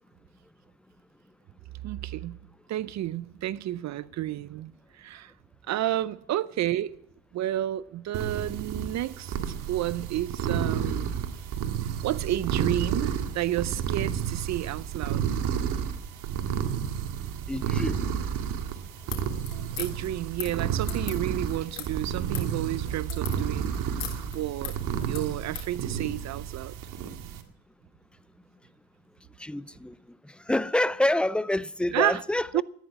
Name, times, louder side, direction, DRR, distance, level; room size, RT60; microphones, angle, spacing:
voice 1, 1.8-2.4 2.7-5.3 5.7-7.0 7.3-11.1 12.0-15.2 19.8-24.8 25.1-26.8 31.9-32.2 32.5-32.6, right 13 dB, 55° right, 0.6 m, -31 dB
sound 1, 8.1-27.4, right 8 dB, 70° right, 2.0 m, -31 dB
voice 2, 17.5-18.0 29.4-30.0 30.5-32.6, left 1 dB, 5° left, 0.5 m, -27 dB
sound 2, 19.0-25.7, left 11 dB, 70° left, 3.6 m, -40 dB
13.5 x 10.5 x 7.1 m
supercardioid pair, 85°, 34 cm